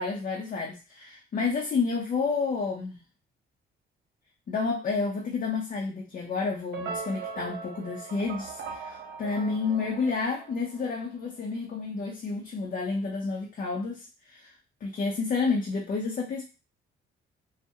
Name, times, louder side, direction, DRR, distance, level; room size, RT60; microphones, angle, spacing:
voice 1, 0.0-3.0 4.5-14.5 14.8-16.4, left 4 dB, 40° left, -1 dB, 0.5 m, -30 dB
sound 1, 6.7-11.0, right 5 dB, 60° right, 0.6 m, -39 dB
2.3 x 2.0 x 2.7 m, 0.31 s
cardioid pair, 90°, 20 cm